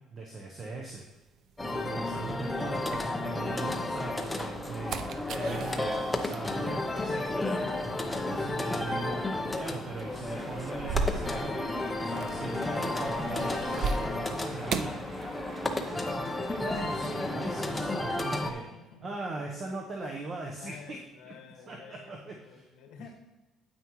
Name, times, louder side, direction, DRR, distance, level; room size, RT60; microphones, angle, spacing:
voice 1, 0.1-1.1 1.6-7.4 8.1-9.3 9.5-11.6 12.0-15.0 16.6-18.7 19.0-22.7, right 3 dB, 30° right, 1 dB, 0.9 m, -40 dB
sound 1, 0.9-3.7 4.1-16.9, right 4 dB, 45° right, 0.4 m, -39 dB
sound 2, 1.6-18.5, left 2 dB, 10° left, 0.6 m, -32 dB
Applause, 9.8-17.7, right 2 dB, 70° right, 2.0 m, -48 dB
voice 2, 18.7-19.2 19.5-19.7 20.6-23.1, left 7 dB, 65° left, 2 dB, 1.7 m, -50 dB
9.3 x 8.5 x 3.1 m, 1.1 s
cardioid pair, 175°, 0 cm